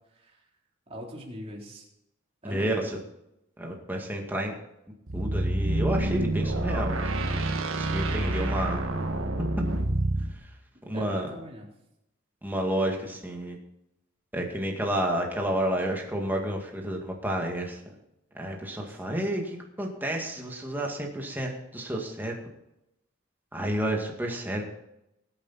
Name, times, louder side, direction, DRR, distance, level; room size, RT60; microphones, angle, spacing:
voice 1, 0.9-1.9 2.4-2.9 10.9-11.7 18.9-19.2, equal, 30° right, -2 dB, 3.6 m, -41 dB
voice 2, 2.4-2.8 3.6-4.5 5.1-7.4 7.8-8.8 10.9-11.3 12.4-13.6 14.3-17.8 18.3-22.4 23.5-24.7, right 1 dB, 10° right, 0 dB, 2.1 m, -30 dB
sound 1, 5.1-10.3, right 1 dB, 75° right, 1.8 m, -28 dB
20.5 x 8.6 x 4.2 m, 0.86 s
head